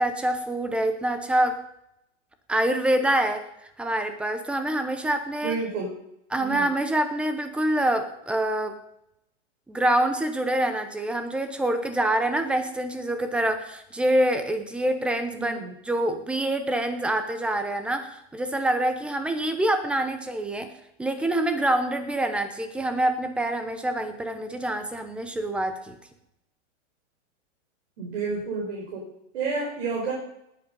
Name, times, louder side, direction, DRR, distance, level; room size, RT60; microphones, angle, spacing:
voice 1, 0.0-1.6 2.5-3.5 3.8-5.6 6.3-8.8 9.7-15.6 15.8-20.7 21.0-25.9, right 1 dB, 5° right, 8 dB, 0.8 m, -26 dB
voice 2, 5.4-5.9 6.4-6.7 15.3-15.7 28.0-29.1 29.3-30.1, right 4 dB, 60° right, -2 dB, 5.0 m, -30 dB
19.0 x 8.2 x 5.5 m, 0.80 s
hypercardioid pair, 160°, 37 cm